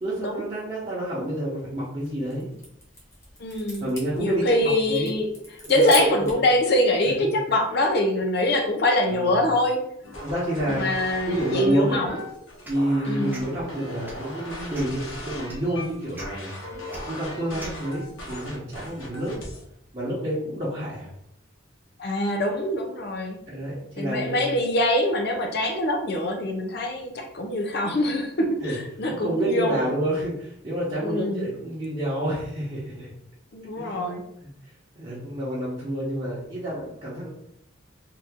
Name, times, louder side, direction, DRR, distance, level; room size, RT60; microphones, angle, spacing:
voice 1, 0.0-2.5 3.8-4.5 4.9-5.1 5.6-5.8 6.2-6.3 7.7-7.8 9.1-9.3 10.2-10.8 11.3-12.0 12.7-16.5 17.0-19.4 19.9-21.1 23.5-24.4 28.6-28.8 29.1-33.1 33.8-34.1 34.9-37.3, right 1 dB, 25° right, -10 dB, 0.9 m, -28 dB
sound 1, 1.8-6.5, left 1 dB, 15° left, 1.0 m, -39 dB
voice 2, 3.4-3.9 4.2-5.3 5.7-9.8 10.7-12.2 13.0-13.4 22.0-23.4 24.0-30.0 31.0-31.5 33.5-34.3, left 1 dB, 55° left, 3 dB, 0.6 m, -24 dB
sound 2, 10.0-19.6, left 1 dB, 90° left, 1.1 m, -38 dB
sound 3, 12.6-12.8 13.3-13.5 14.0-14.3 14.7-15.0 15.5-15.6 16.1-16.3 16.9-17.0 17.6-17.8, right 1 dB, 10° right, 0.5 m, -40 dB
2.8 x 2.6 x 3.6 m, 0.74 s
head